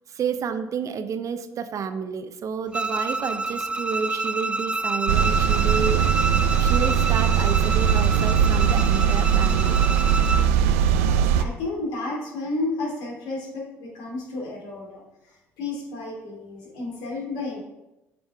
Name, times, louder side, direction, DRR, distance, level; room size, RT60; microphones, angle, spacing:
voice 1, 0.1-6.0 6.6-9.8, right 6 dB, 45° right, 9 dB, 0.7 m, -30 dB
Bowed string instrument, 2.7-10.5, right 2 dB, 15° right, 0.3 m, -28 dB
sound 1, 5.1-11.4, right 8 dB, 80° right, 0.4 m, -20 dB
voice 2, 10.9-17.6, left 2 dB, 75° left, -2 dB, 2.5 m, -32 dB
8.1 x 5.2 x 3.5 m, 0.96 s
hypercardioid pair, 60°, 7 cm